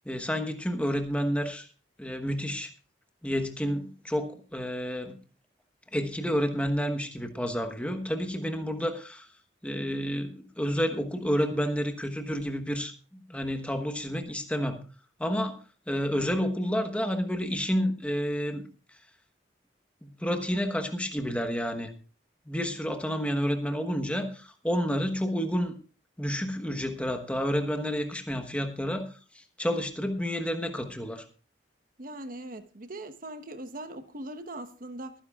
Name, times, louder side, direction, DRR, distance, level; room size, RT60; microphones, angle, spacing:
voice 1, 0.0-1.7 2.0-2.7 3.2-5.2 5.9-9.3 9.6-14.8 15.2-15.6 15.9-18.6 20.0-21.9 22.5-25.7 26.2-29.1 29.3-31.2, equal, 5° left, 1.2 m, -30 dB
voice 2, 32.0-35.1, right 1 dB, 50° right, 1.1 m, -40 dB
23.0 x 10.0 x 2.4 m
head